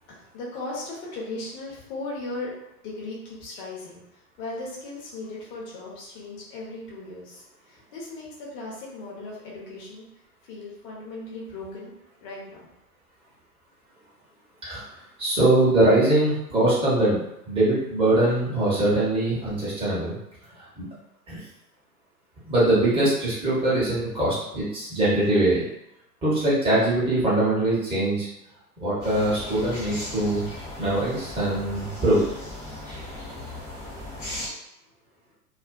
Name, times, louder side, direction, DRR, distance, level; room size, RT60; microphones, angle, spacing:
voice 1, 0.1-2.5 2.8-10.1 10.4-11.9 12.2-12.7 30.5-30.7, left 2 dB, 30° left, -4 dB, 0.8 m, -37 dB
voice 2, 15.2-17.2 17.5-20.2 20.6-20.8 21.3-21.4 22.4-25.6 26.2-28.3 28.8-30.4 30.8-32.2, right 1 dB, 10° right, -9 dB, 0.9 m, -22 dB
sound 1, 29.0-34.5, left 1 dB, 5° left, 0.4 m, -37 dB
2.4 x 2.2 x 2.3 m, 0.83 s
figure-of-eight pair, 110°, 49 cm